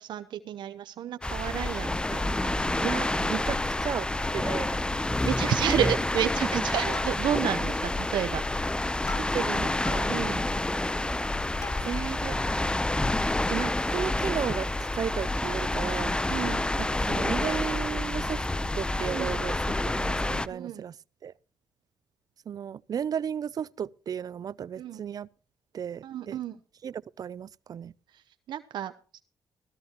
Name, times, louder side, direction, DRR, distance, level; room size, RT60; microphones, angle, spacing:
voice 1, 0.0-2.9 3.2-3.3 5.2-8.4 10.1-10.4 16.3-16.7 19.1-19.4 20.5-20.8 24.8-25.0 26.0-26.6 28.1-29.2, right 10 dB, 80° right, 0.8 m, -31 dB
sound 1, 1.2-20.5, left 2 dB, 10° left, 0.7 m, -28 dB
Plucked string instrument, 1.6-2.2 2.6-2.7 3.0-3.2 3.6-4.3 4.6-4.7 5.1-5.4 5.8-6.2 6.5-7.6 8.1-12.2 12.7-12.8, left 4 dB, 40° left, 1.9 m, -46 dB
voice 2, 2.8-4.8 6.5-6.6 9.1-10.1 11.8-12.4 13.5-16.1 16.8-18.4 18.7-19.6 19.9-20.9 21.2-21.3 22.5-25.3 25.7-26.4 26.8-27.9, right 8 dB, 55° right, 0.5 m, -34 dB
16.5 x 13.5 x 2.9 m
cardioid pair, 80°, 8 cm